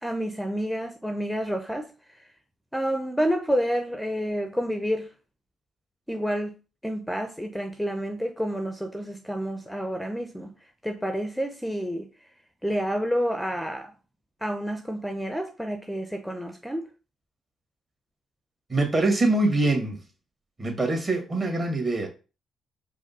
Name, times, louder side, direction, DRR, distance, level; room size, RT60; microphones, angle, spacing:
voice 1, 0.0-2.2 2.7-5.1 6.1-6.5 6.8-10.5 10.8-12.1 12.6-13.9 14.4-16.9, equal, ahead, 0.6 m, -29 dB
voice 2, 18.7-20.0 20.6-22.1, right 2 dB, 35° right, 1.9 m, -24 dB
4.8 x 2.1 x 4.2 m
hypercardioid pair, 50°, 0 cm